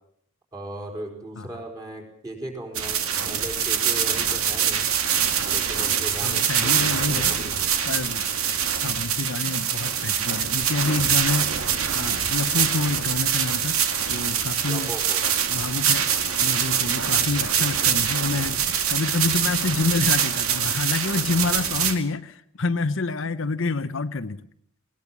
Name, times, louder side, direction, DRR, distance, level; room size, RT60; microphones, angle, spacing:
voice 1, 0.5-4.9 5.5-7.7 14.7-15.2, right 1 dB, 15° right, 1 dB, 4.4 m, -37 dB
sound 1, 2.7-21.9, right 8 dB, 80° right, 2.0 m, -24 dB
voice 2, 6.2-7.3 7.9-8.3 8.8-11.5 11.9-14.9 15.5-16.1 16.4-24.4, left 3 dB, 60° left, 12 dB, 0.8 m, -27 dB
20.5 x 19.5 x 7.3 m, 0.67 s
head